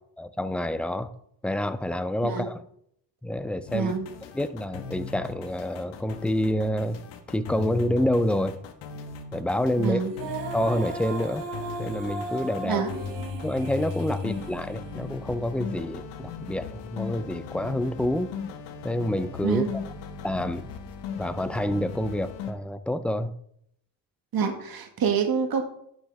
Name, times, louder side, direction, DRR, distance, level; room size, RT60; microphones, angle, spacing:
voice 1, 0.2-1.1 1.4-2.6 3.2-3.9 4.3-7.0 7.3-8.6 9.3-10.0 10.5-11.4 11.8-12.8 13.4-18.3 18.8-19.8 20.2-20.7 21.2-23.3, left 1 dB, 5° left, 12 dB, 0.6 m, -28 dB
sound 1, 3.7-22.5, left 6 dB, 85° left, 1.3 m, -38 dB
voice 2, 3.7-4.1 9.8-10.1 12.6-12.9 19.4-19.7 24.3-25.6, right 6 dB, 55° right, 5 dB, 1.9 m, -26 dB
Female singing, 10.1-15.3, right 3 dB, 85° right, 2.3 m, -37 dB
11.5 x 6.3 x 3.5 m, 0.69 s
cardioid pair, 90°, 42 cm